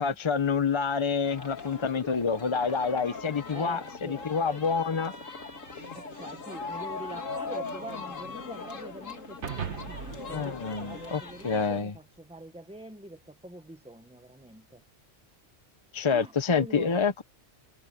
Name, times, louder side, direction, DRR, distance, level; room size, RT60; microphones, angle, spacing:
voice 1, 0.0-5.1 10.3-11.9 15.9-17.2, left 5 dB, 35° left, 0.5 m, -27 dB
sound 1, 1.2-11.8, left 3 dB, 90° left, 2.8 m, -40 dB
voice 2, 3.5-4.2 5.9-14.8 16.1-17.1, right 1 dB, 5° right, 1.0 m, -45 dB
sound 2, 9.4-11.9, right 8 dB, 65° right, 1.4 m, -39 dB
omnidirectional pair, 1.3 m